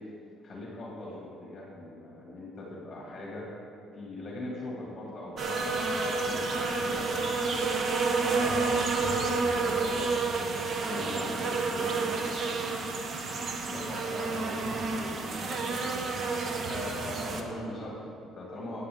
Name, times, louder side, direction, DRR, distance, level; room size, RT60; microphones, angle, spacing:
voice 1, 0.4-3.5 3.9-5.6 5.9-7.8 8.2-12.8 13.6-15.1 15.4-15.9 16.4-18.8, left 1 dB, 30° left, -4 dB, 2.4 m, -41 dB
sound 1, 5.4-17.4, right 3 dB, 45° right, 1.0 m, -30 dB
14.0 x 8.7 x 3.8 m, 2.4 s
cardioid pair, 125°, 0 cm